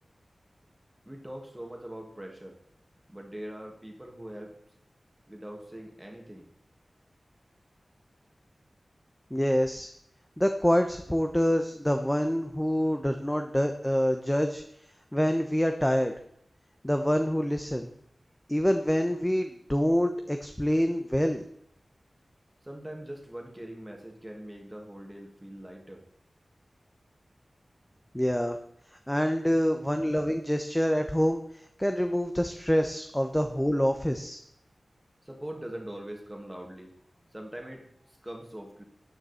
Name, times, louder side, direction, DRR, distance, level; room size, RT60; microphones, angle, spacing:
voice 1, 1.1-2.6 3.1-4.6 5.3-6.5 22.6-26.0 35.2-36.9 37.3-38.8, right 1 dB, 10° right, 2 dB, 2.2 m, -42 dB
voice 2, 9.3-9.9 10.4-14.6 15.1-16.1 16.8-17.9 18.5-21.4 28.1-28.6 29.1-34.4, equal, 10° left, 6 dB, 0.9 m, -26 dB
13.5 x 9.4 x 4.4 m, 0.72 s
wide cardioid pair, 65°, 0 cm